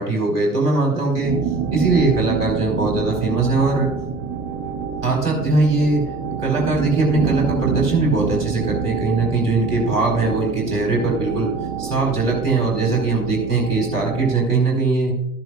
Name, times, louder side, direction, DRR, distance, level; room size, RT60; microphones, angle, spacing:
voice 1, 0.0-1.4 1.7-3.9 5.0-6.0 6.4-11.5 11.8-15.1, right 3 dB, 80° right, -1 dB, 4.4 m, -20 dB
sound 1, 1.2-14.5, right 7 dB, 25° right, 0.9 m, -27 dB
13.5 x 10.5 x 2.4 m, 0.85 s
figure-of-eight pair, 95°, 47 cm